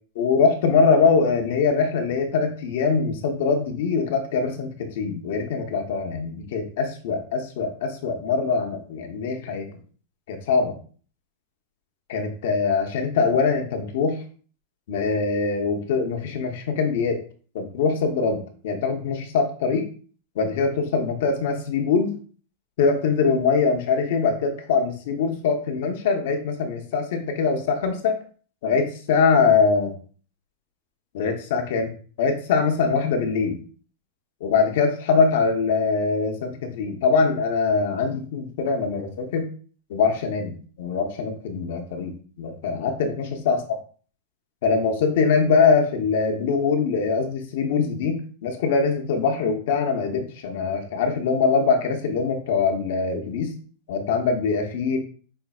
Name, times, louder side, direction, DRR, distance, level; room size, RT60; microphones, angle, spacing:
voice 1, 0.2-9.7 10.3-10.8 12.1-14.2 14.9-17.2 17.5-19.9 20.3-22.1 22.8-28.2 28.6-29.9 31.1-31.9 32.2-33.6 34.4-39.5 39.9-42.1 42.4-43.6 44.6-53.5 53.9-55.0, left 5 dB, 60° left, 4 dB, 0.9 m, -23 dB
5.4 x 3.2 x 2.4 m, 0.42 s
supercardioid pair, 160°, 0 cm